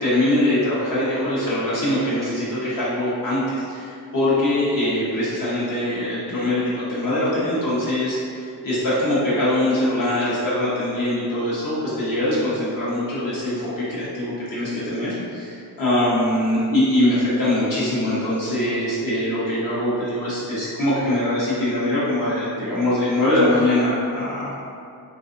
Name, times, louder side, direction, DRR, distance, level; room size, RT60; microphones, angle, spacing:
voice 1, 0.0-24.5, left 1 dB, 55° left, -9 dB, 1.4 m, -22 dB
3.7 x 3.0 x 2.7 m, 2.4 s
cardioid pair, 140°, 38 cm